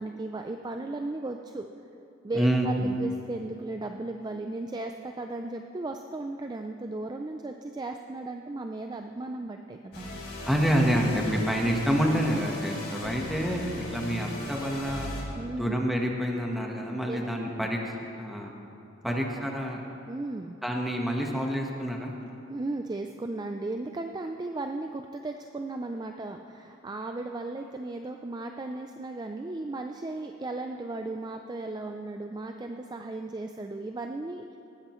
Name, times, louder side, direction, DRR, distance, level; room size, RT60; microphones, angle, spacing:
voice 1, 0.0-1.7 2.2-10.1 15.4-15.7 17.1-17.2 17.5-17.7 19.1-19.5 20.1-20.6 22.5-34.6, right 2 dB, 20° right, 5 dB, 0.4 m, -36 dB
voice 2, 2.3-3.0 10.5-15.1 15.6-18.5 19.0-19.8 20.6-22.1, equal, ahead, 0 dB, 1.2 m, -28 dB
sound 1, 9.9-15.2, left 1 dB, 55° left, 3.1 m, -37 dB
18.5 x 13.0 x 3.1 m, 2.8 s
head